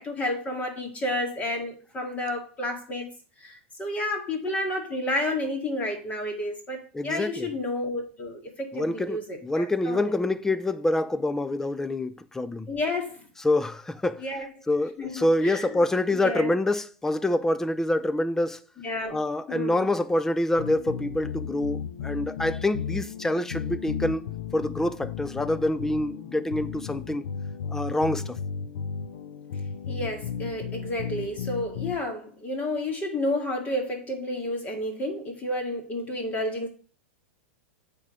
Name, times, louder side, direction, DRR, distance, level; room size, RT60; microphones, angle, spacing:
voice 1, 0.0-3.1 3.4-10.1 12.7-13.2 14.2-14.5 15.0-15.8 16.1-16.5 18.8-19.2 19.5-19.8 29.9-36.7, left 1 dB, 20° left, 2.2 m, -31 dB
voice 2, 6.9-7.5 8.7-12.7 13.4-14.2 14.7-18.6 19.1-27.2 27.7-28.4, left 1 dB, 5° left, 0.5 m, -26 dB
sound 1, 20.6-32.0, left 7 dB, 70° left, 0.8 m, -34 dB
8.7 x 3.8 x 4.9 m
hypercardioid pair, 120°, 7 cm